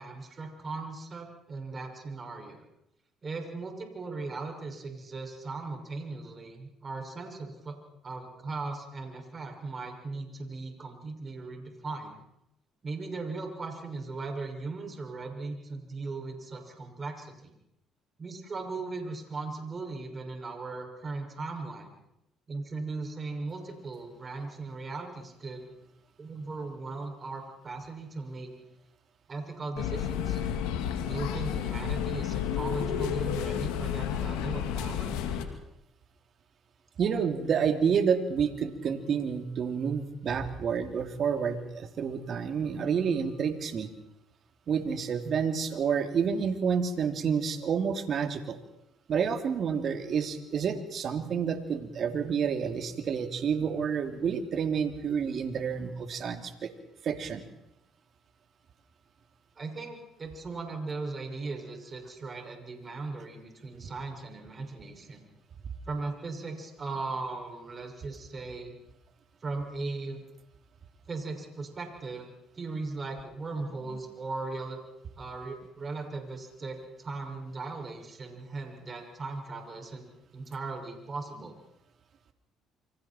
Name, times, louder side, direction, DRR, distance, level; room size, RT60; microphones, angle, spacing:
voice 1, 0.0-2.6 3.2-7.8 8.0-12.2 12.8-17.5 18.2-21.9 22.5-25.7 26.2-28.5 29.3-30.4 31.0-35.1 59.6-65.2 65.9-68.8 69.4-70.2 71.1-72.3 72.5-74.8 75.2-80.1 80.3-81.6, right 3 dB, 35° right, 3 dB, 6.4 m, -38 dB
sound 1, 29.8-35.4, left 9 dB, 85° left, 2.4 m, -31 dB
voice 2, 37.0-43.9 44.7-48.6 49.1-56.7 57.0-57.4, right 6 dB, 55° right, 6 dB, 3.0 m, -29 dB
28.5 x 25.5 x 4.5 m, 0.82 s
supercardioid pair, 65°, 0 cm